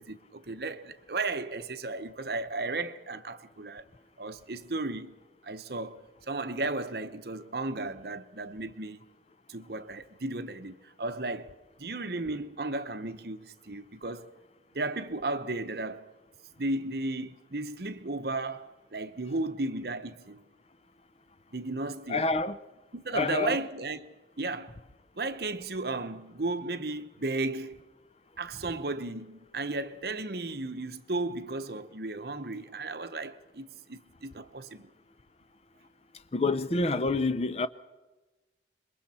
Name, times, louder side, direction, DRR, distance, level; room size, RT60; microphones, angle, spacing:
voice 1, 0.0-3.8 4.2-5.1 5.4-9.0 9.5-14.3 14.7-16.1 16.6-20.4 21.5-22.2 22.9-24.1 24.4-24.7 25.2-27.8 28.4-34.9, right 2 dB, 60° right, 1.0 m, -34 dB
voice 2, 22.1-22.6 23.1-23.6 36.3-37.7, left 3 dB, 35° left, 0.6 m, -27 dB
27.0 x 22.5 x 4.3 m
head